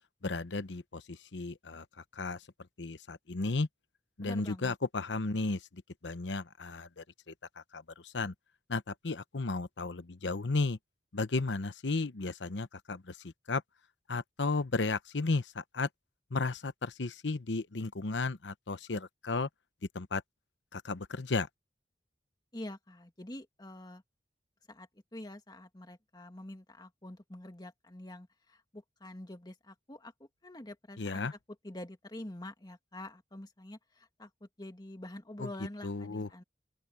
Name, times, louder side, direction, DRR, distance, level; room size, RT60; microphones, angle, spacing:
voice 1, 0.2-1.8 2.2-2.4 2.8-3.7 4.2-7.3 7.7-8.3 8.7-10.8 11.1-13.6 14.1-15.9 16.3-19.5 19.9-20.2 20.7-21.5 31.0-31.3 35.4-35.5 35.8-36.3, left 3 dB, 85° left, 0.9 m, -34 dB
voice 2, 4.2-4.8 22.5-24.0 24.7-31.3 31.6-36.4, left 1 dB, 25° left, 2.1 m, -46 dB
open air
head